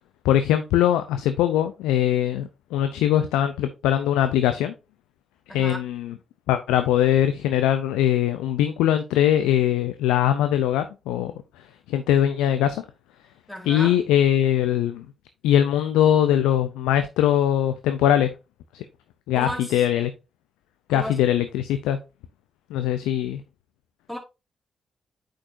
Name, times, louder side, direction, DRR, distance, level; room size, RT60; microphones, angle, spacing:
voice 1, 0.2-4.7 5.5-6.1 6.5-11.3 11.9-12.8 13.7-15.1 15.4-18.3 19.3-20.1 20.9-22.0 22.7-23.4, left 11 dB, 85° left, 0.5 m, -21 dB
voice 2, 13.5-14.0 19.3-19.8 20.9-21.3 24.1-24.2, equal, 15° left, 3.3 m, -34 dB
8.6 x 5.2 x 2.6 m
hypercardioid pair, 45°, 0 cm